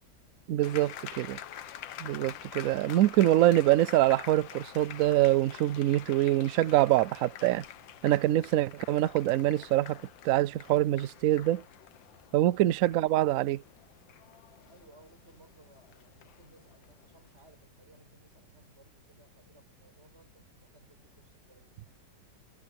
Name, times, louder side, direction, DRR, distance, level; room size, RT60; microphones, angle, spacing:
voice 1, 0.5-1.4 2.0-7.6 8.0-11.6 12.3-13.6, right 14 dB, 80° right, 0.7 m, -25 dB
sound 1, 0.6-17.3, left 10 dB, 80° left, 1.7 m, -47 dB
voice 2, 14.7-22.0, right 2 dB, 35° right, 7.1 m, -61 dB
omnidirectional pair, 2.0 m